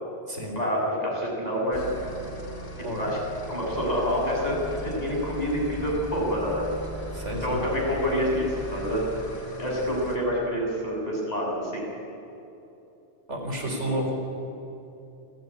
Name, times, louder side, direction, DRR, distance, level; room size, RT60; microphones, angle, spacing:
voice 1, 0.6-2.2 2.9-3.2 3.5-6.7 7.4-9.0 9.6-11.8 13.8-14.1, equal, 35° left, -3 dB, 7.3 m, -27 dB
sound 1, 1.7-10.2, equal, 85° left, 4.3 m, -38 dB
voice 2, 7.1-7.6 13.3-14.1, right 1 dB, 80° right, 2 dB, 4.6 m, -31 dB
28.0 x 18.5 x 9.9 m, 2.9 s
omnidirectional pair, 1.2 m